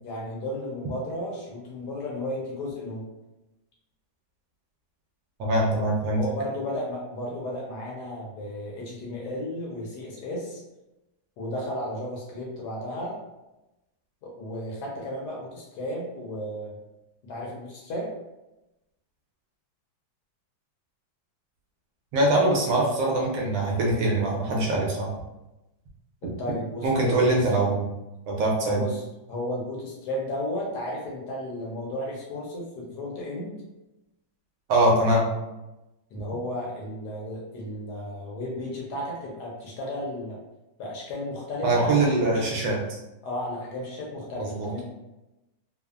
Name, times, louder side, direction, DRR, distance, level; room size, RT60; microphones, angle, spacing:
voice 1, 0.0-3.1 6.1-10.6 11.4-13.2 14.2-16.8 17.2-18.1 26.2-27.3 28.7-33.6 36.1-40.4 40.8-42.6 43.2-44.8, left 1 dB, 70° left, -3 dB, 1.1 m, -34 dB
voice 2, 5.4-6.2 22.1-25.1 26.8-27.9 28.3-28.9 34.7-35.3 41.6-42.8 44.4-44.7, right 2 dB, 75° right, -2 dB, 1.2 m, -23 dB
3.4 x 2.0 x 2.3 m, 0.97 s
omnidirectional pair, 2.2 m